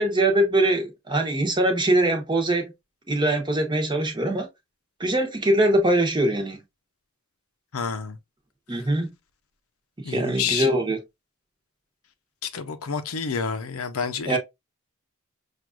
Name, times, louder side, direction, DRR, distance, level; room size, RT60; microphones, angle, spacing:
voice 1, 0.0-2.7 3.1-4.5 5.0-6.6 8.7-9.1 10.1-11.0 14.3-14.4, right 1 dB, 20° right, 0.9 m, -22 dB
voice 2, 7.7-8.2 10.0-10.7 12.5-14.4, left 6 dB, 85° left, 0.6 m, -29 dB
6.0 x 2.5 x 2.3 m
head